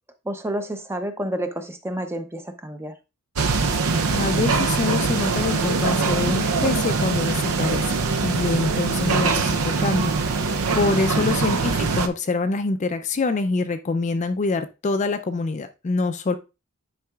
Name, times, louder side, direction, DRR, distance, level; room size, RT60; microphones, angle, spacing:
voice 1, 0.2-2.9 11.0-11.3, right 1 dB, 10° right, 0.6 m, -30 dB
sound 1, 3.4-12.1, right 4 dB, 80° right, 0.6 m, -22 dB
voice 2, 4.1-7.8 8.2-16.4, left 3 dB, 35° left, 0.4 m, -25 dB
9.4 x 4.7 x 2.3 m
head